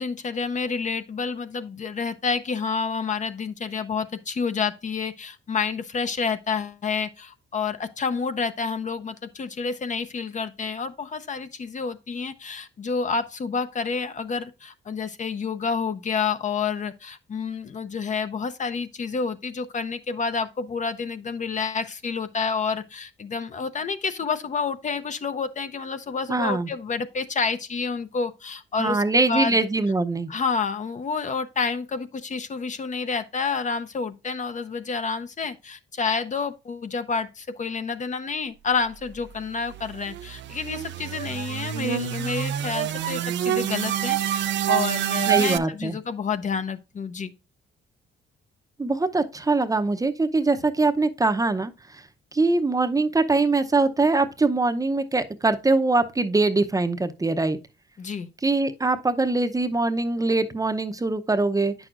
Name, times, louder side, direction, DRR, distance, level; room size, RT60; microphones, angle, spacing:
voice 1, 0.0-29.6 30.3-47.3 58.0-58.3, left 5 dB, 40° left, 0.6 m, -29 dB
voice 2, 26.3-26.7 28.8-30.3 45.3-46.0 48.8-52.0 52.3-57.6 58.4-61.7, right 3 dB, 15° right, 0.7 m, -23 dB
sound 1, 39.2-45.6, right 11 dB, 65° right, 0.5 m, -27 dB
8.8 x 6.2 x 2.5 m
cardioid pair, 90°, 20 cm